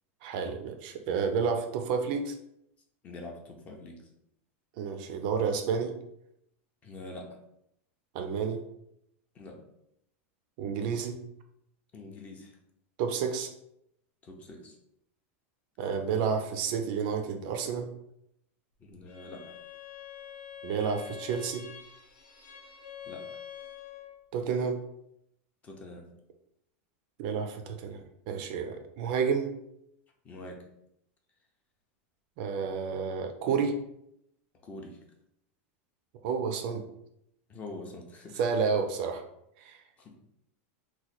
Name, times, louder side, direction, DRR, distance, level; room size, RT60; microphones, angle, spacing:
voice 1, 0.2-2.3 4.8-5.9 8.1-8.6 10.6-11.2 13.0-13.5 15.8-17.9 20.6-21.6 24.3-24.8 27.2-28.0 28.3-29.5 32.4-33.7 36.2-36.8 38.4-39.2 39.6-39.8, right 6 dB, 45° right, 6 dB, 0.4 m, -30 dB
voice 2, 3.0-4.0 6.8-7.4 9.3-9.6 11.9-12.5 14.2-14.7 18.8-19.6 23.0-23.3 25.6-26.0 30.2-30.6 34.6-35.0 37.5-38.4 40.0-40.2, left 2 dB, 20° left, 2 dB, 0.5 m, -44 dB
Bowed string instrument, 19.0-24.2, left 9 dB, 55° left, 0.7 m, -46 dB
3.0 x 2.2 x 4.0 m, 0.77 s
supercardioid pair, 165°, 7 cm